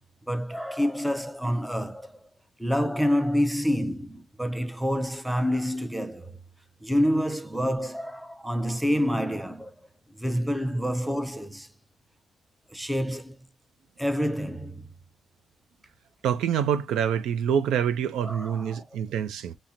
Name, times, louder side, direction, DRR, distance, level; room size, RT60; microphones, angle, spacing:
voice 1, 0.3-2.2 2.6-6.4 6.8-9.7 10.2-11.7 12.7-13.4 14.0-14.9 18.2-18.8, equal, 5° right, 0.5 m, -27 dB
voice 2, 16.2-19.6, right 8 dB, 85° right, 0.4 m, -26 dB
5.7 x 2.0 x 2.5 m
cardioid pair, 90°, 0 cm